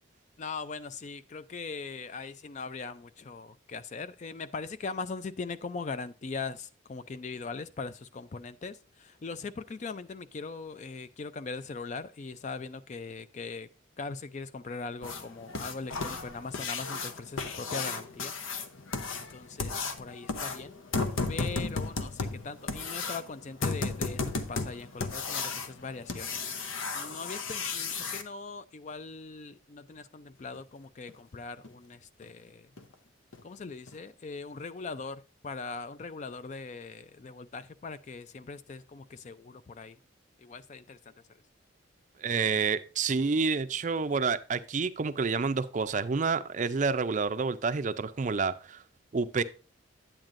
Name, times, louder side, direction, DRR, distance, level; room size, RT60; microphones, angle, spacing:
voice 1, 0.4-13.7 14.0-18.3 19.1-20.8 21.3-26.5 26.9-32.7 33.4-40.0 40.4-41.0, left 4 dB, 35° left, 0.4 m, -40 dB
sound 1, 15.0-28.2 30.5-30.6 31.1-31.2 31.6-31.7 32.2-32.3 32.8-32.9 33.3-33.4 33.9-34.0, left 4 dB, 90° left, 0.8 m, -34 dB
voice 2, 42.2-48.8 49.1-49.4, right 4 dB, 40° right, 0.4 m, -29 dB
8.9 x 8.7 x 2.5 m
head